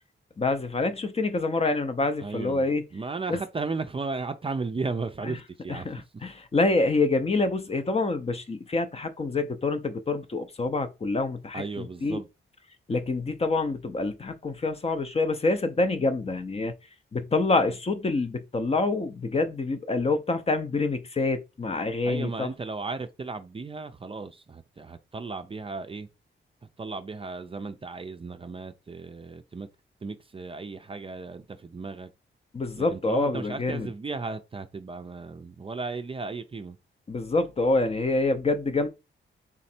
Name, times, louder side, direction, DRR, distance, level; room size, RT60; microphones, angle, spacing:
voice 1, 0.4-2.8 3.3-3.4 5.3-5.4 5.7-12.2 12.9-16.7 17.1-22.5 32.5-33.9 37.1-38.9, left 3 dB, 30° left, 0.6 m, -26 dB
voice 2, 2.2-2.6 2.9-5.9 11.5-12.3 22.0-26.1 26.8-29.7 30.0-32.1 32.8-36.8, right 4 dB, 25° right, 0.5 m, -35 dB
3.6 x 3.1 x 4.3 m
cardioid pair, 105°, 20 cm